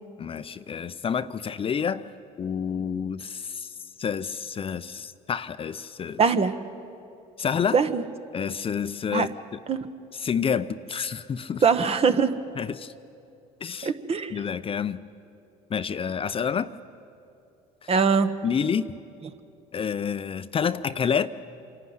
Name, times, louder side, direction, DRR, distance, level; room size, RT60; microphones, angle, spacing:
voice 1, 0.2-2.1 2.4-3.7 4.0-6.2 7.4-7.8 8.3-9.3 10.1-11.6 12.6-12.9 13.6-13.9 14.3-15.0 15.7-16.7 17.8-17.9 18.4-18.9 19.7-21.3, left 7 dB, 35° left, 12 dB, 0.6 m, -28 dB
voice 2, 6.2-6.6 7.7-8.0 9.1-9.3 9.7-9.8 11.6-12.3 13.8-14.3 17.9-18.3, right 5 dB, 40° right, 10 dB, 1.2 m, -21 dB
26.5 x 11.5 x 9.5 m, 2.6 s
supercardioid pair, 80°, 16 cm